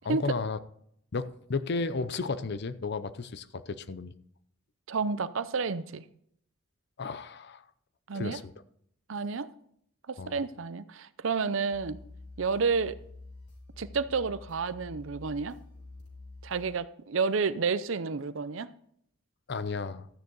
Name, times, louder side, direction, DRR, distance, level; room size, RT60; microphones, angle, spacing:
voice 1, 0.0-0.6 1.1-4.1 7.0-7.6 8.1-8.5 10.2-10.4 19.5-20.1, left 4 dB, 55° left, 0.6 m, -33 dB
voice 2, 4.9-6.0 8.1-8.4 9.1-9.5 10.1-12.0 12.4-13.0 13.8-15.6 16.4-18.7, right 5 dB, 65° right, 0.6 m, -30 dB
sound 1, 11.7-16.7, left 2 dB, 35° left, 3.0 m, -48 dB
13.0 x 9.5 x 3.9 m
head